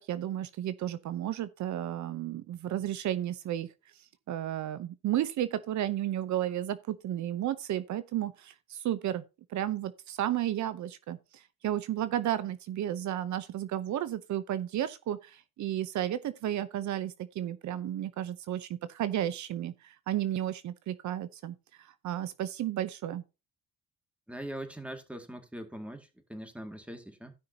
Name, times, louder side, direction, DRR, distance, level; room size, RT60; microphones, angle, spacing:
voice 1, 0.0-3.7 4.3-9.2 9.5-23.2, right 12 dB, 70° right, 0.8 m, -33 dB
voice 2, 24.3-27.3, right 1 dB, 5° right, 2.2 m, -42 dB
16.0 x 5.6 x 2.8 m
cardioid pair, 90°, 30 cm